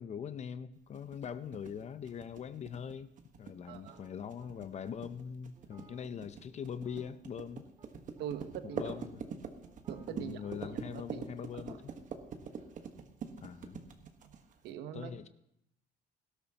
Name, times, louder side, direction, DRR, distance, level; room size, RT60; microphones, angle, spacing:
voice 1, 0.0-3.1 3.4-7.7 8.7-9.3 10.1-11.9 13.4-13.8 14.9-15.3, left 7 dB, 40° left, 13 dB, 0.6 m, -42 dB
sound 1, 0.9-14.7, right 6 dB, 50° right, 1.4 m, -44 dB
voice 2, 3.7-4.0 8.2-8.9 9.9-10.4 10.7-11.3 11.6-11.8 14.2-14.3 14.6-15.1, right 9 dB, 85° right, 9 dB, 1.1 m, -43 dB
sound 2, 3.9-4.6 5.6-7.5 7.8-7.9 8.2-10.7, right 3 dB, 30° right, 2.4 m, -63 dB
18.0 x 12.5 x 2.9 m, 0.75 s
cardioid pair, 110°, 17 cm